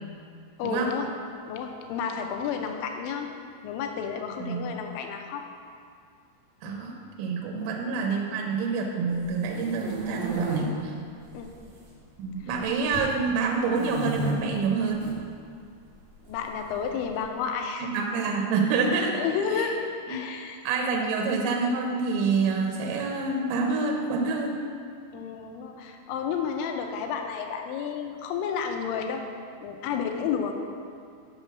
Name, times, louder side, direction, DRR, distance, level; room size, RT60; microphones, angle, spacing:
voice 1, 0.6-1.1 1.5-3.3 3.6-5.4 6.6-6.8 7.6-7.7 11.3-11.5 16.3-17.9 19.1-20.6 21.0-21.2 25.1-29.2 29.6-30.6, left 6 dB, 85° left, 4 dB, 3.0 m, -31 dB
voice 2, 4.4-4.7 6.6-10.9 12.2-15.1 17.8-19.2 19.5-19.7 20.1-20.2 20.6-24.6, right 4 dB, 85° right, 1 dB, 3.1 m, -27 dB
sound 1, 9.2-10.6 11.3-11.9 12.1-13.1 13.7-14.3 14.9-15.1 16.3-17.2, right 4 dB, 60° right, 2.1 m, -33 dB
7.6 x 5.8 x 5.9 m, 2.3 s
omnidirectional pair, 5.3 m